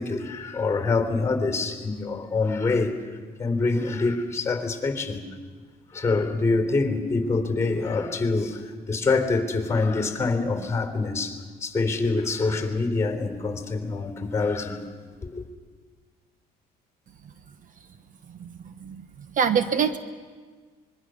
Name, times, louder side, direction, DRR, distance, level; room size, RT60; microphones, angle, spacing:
voice 1, 0.0-2.9 3.4-5.2 5.9-14.8 15.2-15.4, left 3 dB, 15° left, 3.6 m, -25 dB
voice 2, 19.4-20.0, right 7 dB, 50° right, 1.2 m, -23 dB
25.0 x 22.5 x 6.4 m
cardioid pair, 110°, 17 cm